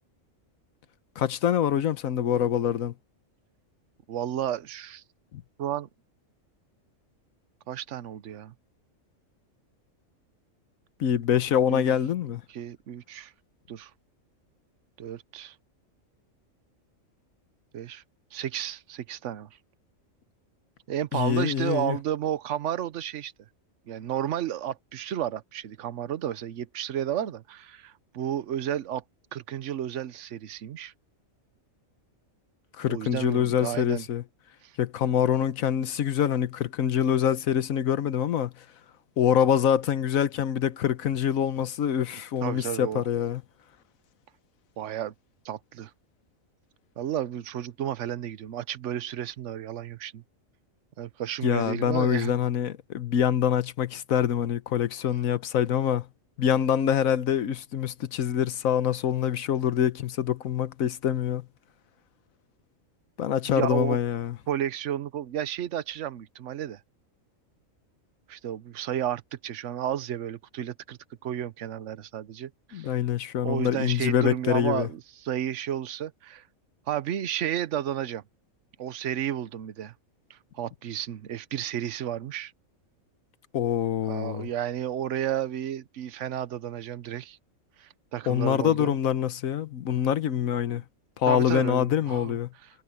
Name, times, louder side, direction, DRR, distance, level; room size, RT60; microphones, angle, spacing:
voice 1, 1.2-2.9 11.0-12.4 21.1-22.0 32.8-34.2 34.8-38.5 39.2-43.4 51.4-56.1 56.4-61.5 63.2-64.3 72.7-74.9 83.5-84.5 88.3-90.8 91.2-92.5, left 9 dB, 90° left, 1.3 m, -25 dB
voice 2, 4.1-5.0 5.6-5.9 7.7-8.5 11.7-11.9 12.5-13.3 13.7-13.9 15.0-15.5 17.7-18.0 18.3-19.5 20.9-23.3 23.9-29.0 29.3-30.9 32.9-34.1 34.6-34.8 42.1-43.1 44.8-45.1 45.4-45.9 47.0-50.2 51.0-52.3 63.5-64.0 64.5-66.8 68.3-72.9 73.4-76.4 76.9-78.2 78.8-79.9 80.3-82.5 84.1-87.4 87.8-89.0 91.3-92.7, right 10 dB, 65° right, 1.1 m, -32 dB
omnidirectional pair, 1.4 m